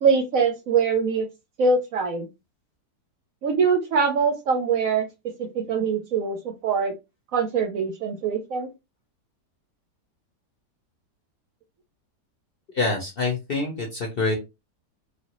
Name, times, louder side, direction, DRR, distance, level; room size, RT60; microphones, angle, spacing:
voice 1, 0.0-1.3 1.6-2.3 3.4-5.1 5.4-6.9 7.3-8.7, right 5 dB, 70° right, 5 dB, 0.9 m, -23 dB
voice 2, 12.7-14.4, left 3 dB, 50° left, 0 dB, 0.7 m, -26 dB
3.2 x 2.5 x 2.9 m, 0.24 s
omnidirectional pair, 1.8 m